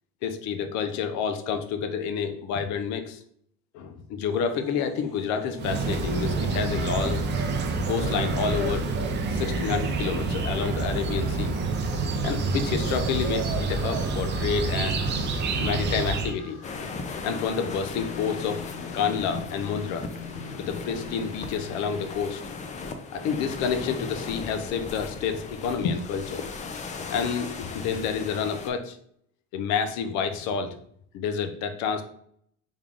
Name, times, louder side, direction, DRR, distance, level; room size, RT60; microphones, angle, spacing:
voice 1, 0.2-3.2 3.7-7.2 7.8-8.9 9.3-11.5 12.2-15.0 15.6-16.6 17.2-18.6 18.9-20.2 20.6-22.4 23.1-29.0 29.5-30.7 31.1-32.0, left 6 dB, 70° left, 8 dB, 0.6 m, -29 dB
sound 1, 4.3-22.1, left 5 dB, 45° left, 0.9 m, -44 dB
sound 2, 5.6-16.3, right 3 dB, 40° right, 0.5 m, -27 dB
sound 3, 16.6-28.7, left 4 dB, 25° left, 0.4 m, -37 dB
3.6 x 2.4 x 3.5 m, 0.65 s
cardioid pair, 120°, 29 cm